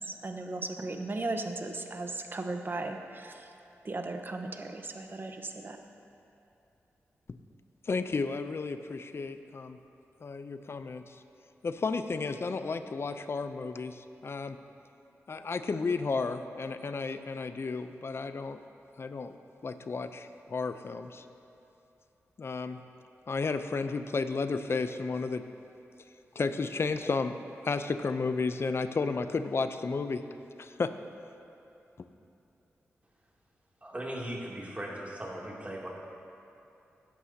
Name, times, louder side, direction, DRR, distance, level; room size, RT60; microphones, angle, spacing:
voice 1, 0.0-3.5 3.8-5.8, right 2 dB, 40° right, 5 dB, 1.0 m, -36 dB
voice 2, 7.9-9.8 10.2-11.0 11.6-14.6 15.3-18.6 19.0-19.3 19.6-21.2 22.4-22.8 23.3-25.4 26.4-27.4 27.6-30.2 30.6-30.9, left 4 dB, 55° left, 10 dB, 0.6 m, -32 dB
voice 3, 33.8-35.9, right 1 dB, 25° right, -4 dB, 2.8 m, -38 dB
16.0 x 11.0 x 2.8 m, 2.8 s
cardioid pair, 45°, 5 cm